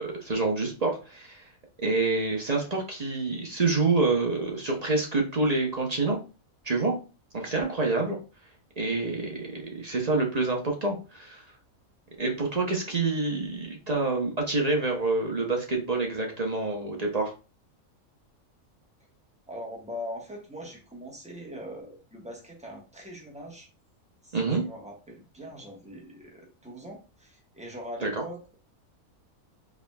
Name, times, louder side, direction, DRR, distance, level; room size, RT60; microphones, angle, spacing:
voice 1, 0.0-1.5 1.8-6.2 6.6-6.9 7.3-8.2 8.8-11.4 12.2-17.3 24.3-24.6 28.0-28.2, right 3 dB, 35° right, 1 dB, 0.7 m, -27 dB
voice 2, 19.5-23.7 24.2-28.5, equal, 5° right, -1 dB, 1.0 m, -41 dB
4.8 x 3.4 x 2.3 m, 0.33 s
omnidirectional pair, 1.5 m